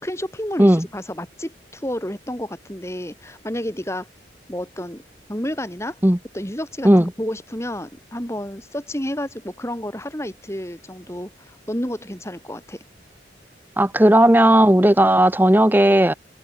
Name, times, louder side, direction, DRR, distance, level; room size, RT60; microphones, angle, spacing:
voice 1, 0.0-4.1 4.5-5.0 5.3-6.0 6.3-12.8, equal, 15° left, 3.6 m, -30 dB
voice 2, 13.8-16.1, right 1 dB, 10° right, 0.9 m, -14 dB
head